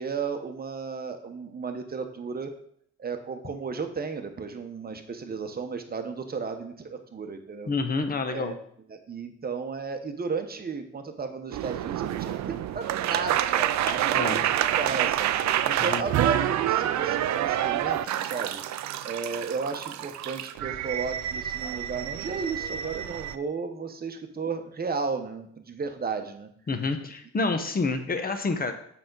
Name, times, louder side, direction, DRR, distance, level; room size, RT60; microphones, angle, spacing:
voice 1, 0.0-2.5 3.0-7.7 8.3-8.6 8.9-15.3 15.6-18.6 19.0-26.5, right 5 dB, 30° right, 6 dB, 1.0 m, -34 dB
voice 2, 7.7-8.5 14.0-14.4 15.9-16.0 26.7-28.7, left 3 dB, 30° left, 7 dB, 1.0 m, -28 dB
sound 1, 11.5-23.3, right 11 dB, 65° right, 0.5 m, -28 dB
7.6 x 5.8 x 4.0 m, 0.65 s
cardioid pair, 90°, 30 cm